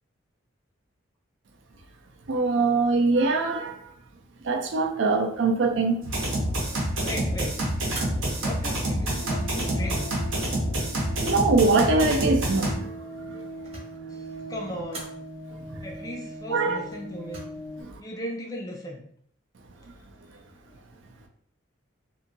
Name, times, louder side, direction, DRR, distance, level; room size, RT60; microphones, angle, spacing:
voice 1, 2.3-3.7 4.4-6.0 11.2-12.9 13.3-13.4 16.5-16.8, right 3 dB, 70° right, 3 dB, 0.5 m, -22 dB
sound 1, 6.0-12.7, right 1 dB, 85° right, 0.9 m, -27 dB
voice 2, 7.0-7.6 8.4-10.2 14.1-15.2 15.8-17.4 18.0-19.0 20.7-20.8, left 1 dB, 20° left, 1 dB, 0.3 m, -37 dB
sound 2, 7.9-8.6 9.3-9.9 13.1-14.1 14.9-15.3 16.9-17.4, right 2 dB, 30° right, 1.0 m, -42 dB
sound 3, 9.2-17.8, right 1 dB, 80° left, 0.7 m, -40 dB
2.8 x 2.6 x 2.6 m, 0.64 s
head